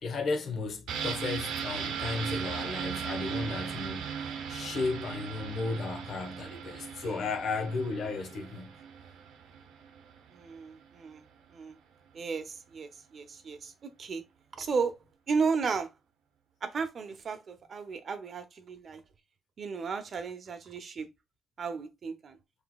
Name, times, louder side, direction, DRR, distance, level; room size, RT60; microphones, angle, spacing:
voice 1, 0.0-4.1 4.5-8.8, left 3 dB, 60° left, 1.2 m, -34 dB
sound 1, 0.9-10.5 10.8-10.9, right 7 dB, 85° right, 0.7 m, -37 dB
voice 2, 10.3-11.2 11.5-11.8 12.1-14.2 14.5-14.9 15.3-15.9 16.6-19.0 19.6-21.1 21.6-22.4, right 5 dB, 50° right, 0.9 m, -34 dB
5.8 x 3.4 x 2.3 m
cardioid pair, 90°, 0 cm